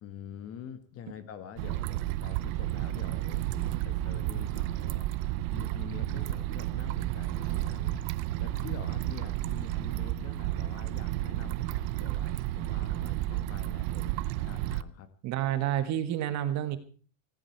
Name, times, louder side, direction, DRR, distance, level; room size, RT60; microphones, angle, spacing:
voice 1, 0.0-5.1 5.5-8.0 8.4-14.1 14.4-15.1, left 8 dB, 30° left, 12 dB, 1.5 m, -46 dB
sound 1, 1.6-14.8, right 15 dB, 55° right, 0.9 m, -32 dB
voice 2, 15.2-16.8, right 11 dB, 35° right, 10 dB, 1.6 m, -29 dB
18.5 x 16.5 x 4.6 m, 0.40 s
cardioid pair, 180°, 49 cm